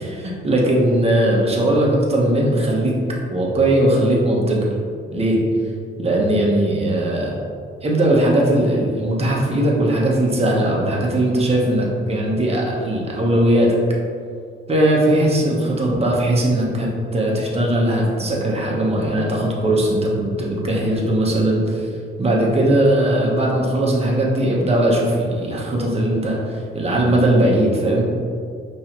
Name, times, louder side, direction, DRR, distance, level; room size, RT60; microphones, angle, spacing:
voice 1, 0.0-3.0 3.3-4.6 5.1-5.4 6.0-7.4 7.8-13.8 14.7-21.9 22.2-28.0, right 1 dB, 30° right, -2 dB, 1.1 m, -19 dB
5.3 x 3.2 x 3.0 m, 2.2 s
cardioid pair, 90°, 20 cm